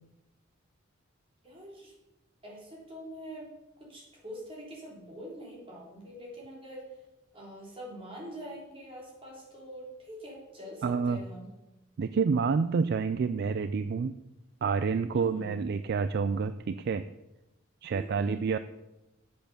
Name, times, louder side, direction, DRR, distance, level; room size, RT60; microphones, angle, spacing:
voice 1, 1.4-1.9 2.4-3.5 3.9-6.9 7.3-11.5 15.1-15.5 17.9-18.4, equal, 25° right, -3 dB, 3.4 m, -44 dB
voice 2, 10.8-11.2 12.0-14.1 14.6-17.0 17.8-18.6, right 5 dB, 55° right, 12 dB, 0.3 m, -28 dB
7.8 x 6.9 x 6.6 m, 0.96 s
head